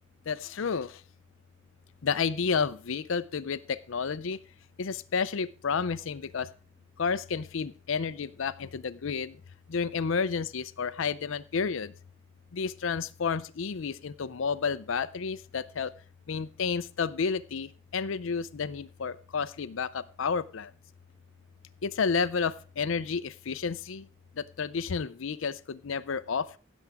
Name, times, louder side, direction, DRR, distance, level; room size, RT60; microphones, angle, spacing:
voice 1, 0.3-1.0 2.0-4.4 4.8-6.5 7.0-9.4 9.7-11.9 12.5-15.9 16.3-20.7 21.8-24.1 24.4-26.6, left 5 dB, 70° left, 15 dB, 0.5 m, -31 dB
16.0 x 7.2 x 3.5 m, 0.38 s
head